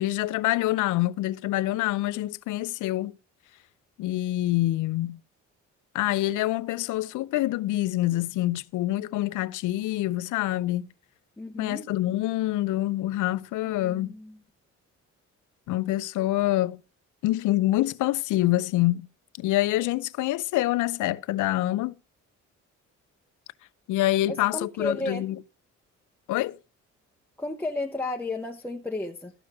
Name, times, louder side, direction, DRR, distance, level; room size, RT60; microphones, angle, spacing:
voice 1, 0.0-3.1 4.0-5.2 5.9-10.9 11.6-14.1 15.7-16.8 17.2-19.1 19.4-21.9 23.9-25.4 26.3-26.6, left 16 dB, 85° left, 0.6 m, -26 dB
voice 2, 11.4-11.8 13.6-14.4 24.3-25.3 27.4-29.3, left 2 dB, 5° left, 0.9 m, -33 dB
13.0 x 5.0 x 5.9 m
cardioid pair, 90°, 30 cm